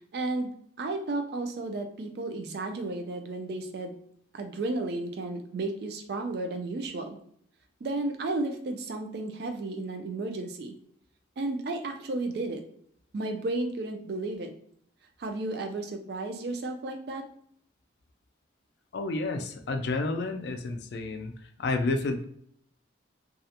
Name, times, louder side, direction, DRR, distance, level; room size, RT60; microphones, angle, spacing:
voice 1, 0.1-0.5 0.8-3.9 4.3-7.2 7.8-10.8 11.4-12.6 13.1-14.5 15.2-17.3, right 2 dB, 55° right, 5 dB, 0.3 m, -33 dB
voice 2, 18.9-22.2, left 3 dB, 60° left, 6 dB, 0.3 m, -30 dB
2.3 x 2.1 x 2.8 m, 0.66 s
head